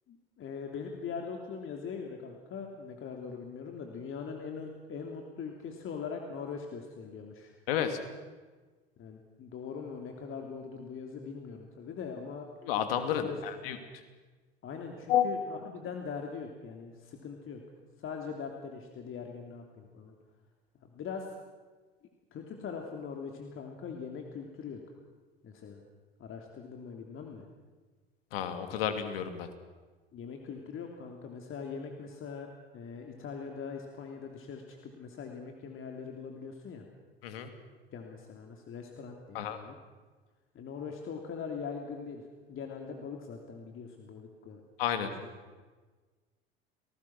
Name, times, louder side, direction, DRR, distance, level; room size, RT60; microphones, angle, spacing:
voice 1, 0.1-7.5 9.0-12.5 13.2-13.7 14.6-17.6 18.0-20.1 20.8-21.3 22.3-24.8 25.4-25.8 26.2-27.5 30.1-32.5 32.7-36.9 37.9-39.8 40.5-44.6 45.5-45.6, left 6 dB, 45° left, 3 dB, 3.2 m, -41 dB
voice 2, 7.7-8.0 12.6-13.8 15.1-15.3 28.3-29.5 37.2-37.5 39.3-39.6 44.8-45.1, left 10 dB, 70° left, 8 dB, 2.8 m, -30 dB
29.5 x 19.0 x 6.2 m, 1.3 s
hypercardioid pair, 70°, 30 cm